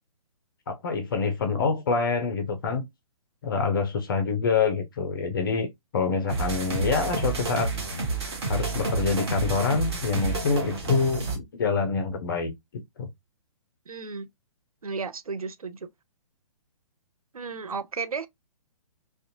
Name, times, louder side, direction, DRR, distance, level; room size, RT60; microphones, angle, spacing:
voice 1, 0.7-2.9 3.4-5.7 5.9-7.7 8.5-12.5 13.0-13.1, left 4 dB, 35° left, 0.4 m, -26 dB
sound 1, 6.3-11.4, right 3 dB, 45° right, 0.9 m, -30 dB
voice 2, 13.9-14.3 14.8-15.9 17.3-18.3, right 5 dB, 75° right, 0.4 m, -33 dB
2.5 x 2.2 x 2.5 m
figure-of-eight pair, 125°, 18 cm